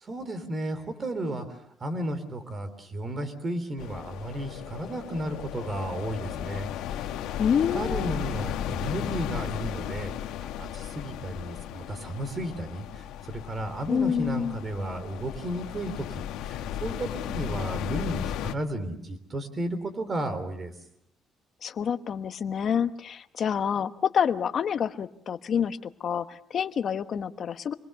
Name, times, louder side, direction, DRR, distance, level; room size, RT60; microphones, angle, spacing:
voice 1, 0.0-7.1 7.7-10.1 10.4-20.7, right 1 dB, 30° right, 11 dB, 3.4 m, -33 dB
sound 1, 3.8-18.5, left 10 dB, 85° left, 1.6 m, -35 dB
voice 2, 7.4-8.1 13.9-14.6 21.6-27.7, left 7 dB, 45° left, 10 dB, 1.1 m, -27 dB
26.0 x 21.0 x 6.8 m, 0.76 s
cardioid pair, 125°, 0 cm